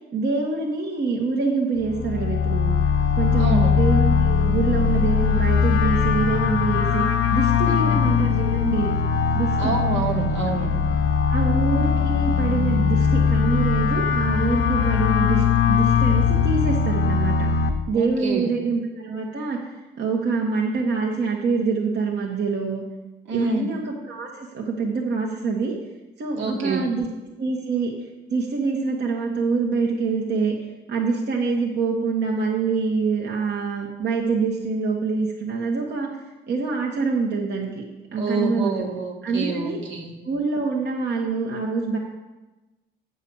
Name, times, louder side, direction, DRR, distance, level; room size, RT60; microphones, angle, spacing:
voice 1, 0.1-2.8 3.1-7.0 7.3-9.0 9.3-9.8 11.3-17.5 17.9-19.6 20.0-22.8 23.3-25.7 26.2-27.1 27.4-27.9 28.3-30.6 30.9-36.1 36.5-37.8 38.1-38.9 39.2-39.8 40.2-42.0, right 4 dB, 60° right, -1 dB, 1.4 m, -25 dB
sound 1, 1.8-17.7, left 6 dB, 75° left, 0.9 m, -20 dB
voice 2, 3.4-3.8 7.6-8.0 9.6-10.7 17.9-18.5 23.3-23.7 26.4-26.9 38.2-40.1, right 3 dB, 80° right, 0 dB, 1.9 m, -28 dB
8.7 x 5.4 x 7.1 m, 1.1 s
cardioid pair, 90°, 20 cm